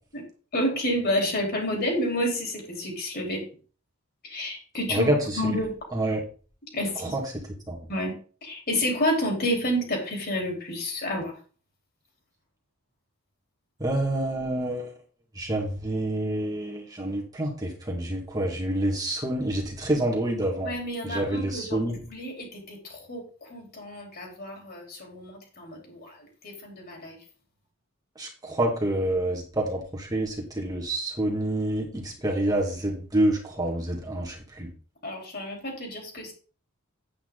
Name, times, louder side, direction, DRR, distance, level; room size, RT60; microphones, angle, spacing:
voice 1, 0.5-3.4 4.2-5.1 5.4-5.8 6.7-7.1 7.9-8.1 8.4-11.3 20.6-21.8 22.1-27.2 35.0-36.3, equal, 50° left, 1 dB, 4.0 m, -30 dB
voice 2, 4.9-5.5 5.9-6.2 7.0-7.8 13.8-14.9 15.4-20.7 21.0-22.0 28.2-34.7, right 1 dB, 15° right, -2 dB, 2.2 m, -27 dB
8.9 x 8.6 x 4.0 m, 0.38 s
head